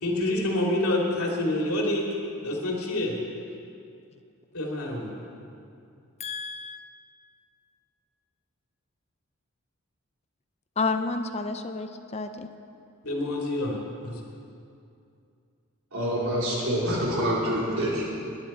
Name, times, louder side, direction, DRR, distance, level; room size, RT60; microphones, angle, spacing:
voice 1, 0.0-2.1 2.4-3.2 4.5-5.2 13.1-14.1, left 1 dB, 90° left, -2 dB, 2.7 m, -27 dB
voice 2, 6.2-6.8 10.8-12.5, left 3 dB, 30° left, 8 dB, 0.5 m, -30 dB
voice 3, 15.9-18.1, equal, 80° right, -6 dB, 4.2 m, -26 dB
21.0 x 10.5 x 4.4 m, 2.5 s
head